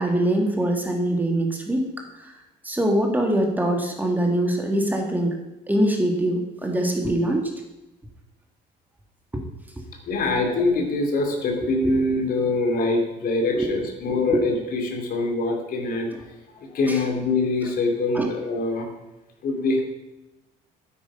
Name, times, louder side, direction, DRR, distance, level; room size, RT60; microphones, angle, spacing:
voice 1, 0.0-1.9 2.2-2.3 2.6-5.4 5.7-7.5 9.3-9.4 11.6-11.7 13.5-13.7 14.1-14.4 16.9-17.0 18.1-18.3, right 1 dB, 10° right, 2 dB, 1.9 m, -23 dB
voice 2, 10.0-16.2 16.6-18.9 19.4-19.8, left 2 dB, 60° left, 3 dB, 2.7 m, -24 dB
9.4 x 8.8 x 5.4 m, 1.0 s
cardioid pair, 110°, 17 cm